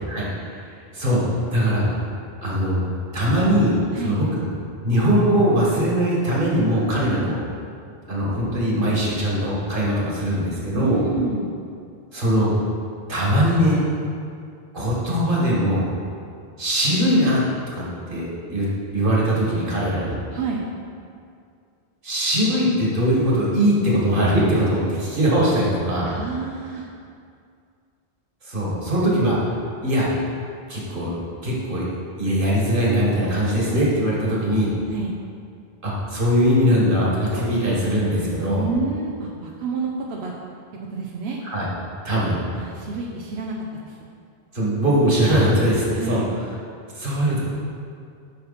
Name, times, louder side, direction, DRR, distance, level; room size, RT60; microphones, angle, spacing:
voice 1, 0.7-1.9 2.4-2.9 3.1-4.4 4.8-7.4 8.1-11.0 12.1-12.5 13.1-13.8 14.7-15.9 16.6-17.4 17.7-17.8 18.1-18.7 18.9-20.2 22.0-26.2 28.4-29.4 29.8-30.1 30.7-31.1 31.4-31.9 32.2-34.7 35.8-38.7 41.4-41.7 42.0-42.4 44.5-46.2 47.0-47.4, equal, 55° right, -5 dB, 1.9 m, -21 dB
voice 2, 7.0-7.3 10.7-11.5 20.3-20.7 26.1-26.9 34.9-35.2 38.5-40.3 40.9-41.4 42.5-43.5 43.8-44.0 45.9-46.4, right 3 dB, 85° right, -1 dB, 1.0 m, -28 dB
8.9 x 5.9 x 4.1 m, 2.3 s
omnidirectional pair, 1.0 m